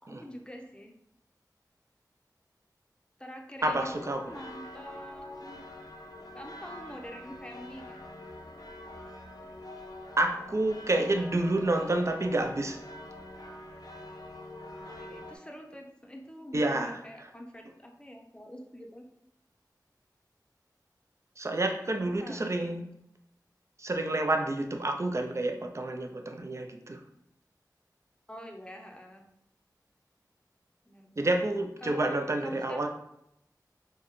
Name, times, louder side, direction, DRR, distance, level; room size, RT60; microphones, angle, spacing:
voice 1, 0.0-0.9 3.2-5.6 6.3-8.0 8.5-8.8 14.7-19.1 22.0-22.9 28.3-29.2 30.9-31.3 31.8-32.2 32.4-32.8, equal, 15° left, 2 dB, 0.6 m, -46 dB
sound 1, 3.6-15.4, left 1 dB, 65° left, 0.5 m, -45 dB
voice 2, 3.6-4.2 10.2-12.8 16.5-16.9 21.4-22.9 23.8-27.0 31.2-32.9, right 2 dB, 45° right, 4 dB, 0.4 m, -29 dB
4.5 x 2.1 x 3.1 m, 0.78 s
wide cardioid pair, 40°, 7 cm